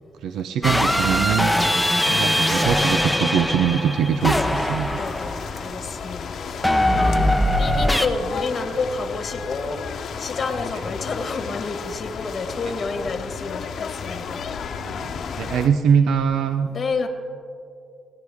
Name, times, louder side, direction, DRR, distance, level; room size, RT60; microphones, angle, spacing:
voice 1, 0.2-1.5 2.1-5.0 14.8-16.7, right 7 dB, 85° right, 9 dB, 0.5 m, -22 dB
sound 1, 0.6-5.8 6.6-8.1, left 1 dB, ahead, 0.9 m, -21 dB
sound 2, 4.2-15.7, left 6 dB, 60° left, 0.9 m, -33 dB
voice 2, 5.0-7.3 7.6-14.5 16.7-17.1, left 4 dB, 35° left, 6 dB, 1.4 m, -30 dB
21.0 x 17.0 x 3.6 m, 2.5 s
cardioid pair, 125°, 0 cm